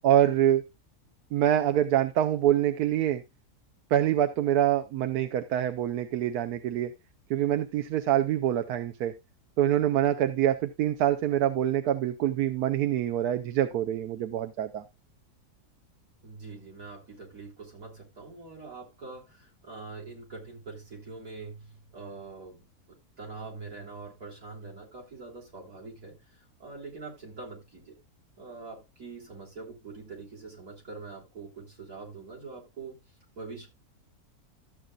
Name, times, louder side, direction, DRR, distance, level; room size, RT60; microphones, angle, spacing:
voice 1, 0.0-0.6 1.3-3.2 3.9-6.9 7.3-9.1 9.6-14.8, right 11 dB, 80° right, 8 dB, 1.2 m, -25 dB
voice 2, 16.2-28.0 28.4-33.0 33.4-33.7, right 4 dB, 60° right, -2 dB, 3.6 m, -44 dB
13.5 x 7.6 x 2.4 m, 0.22 s
omnidirectional pair, 1.6 m